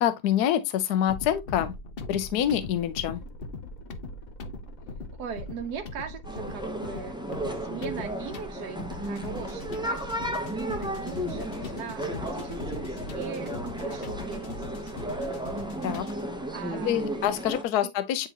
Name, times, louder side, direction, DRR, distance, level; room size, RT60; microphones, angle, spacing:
voice 1, 0.0-1.7 2.1-3.2 15.8-16.1 16.8-18.3, left 10 dB, 75° left, 1.2 m, -26 dB
sound 1, 1.1-16.3, left 3 dB, 45° left, 0.8 m, -41 dB
sound 2, 2.5-17.3, left 2 dB, 60° left, 1.6 m, -51 dB
voice 2, 5.2-7.2 7.5-15.3 16.5-17.2 17.8-17.9, right 6 dB, 80° right, 1.3 m, -40 dB
sound 3, 6.2-17.6, right 1 dB, 5° right, 0.6 m, -34 dB
9.0 x 3.8 x 2.9 m
omnidirectional pair, 1.7 m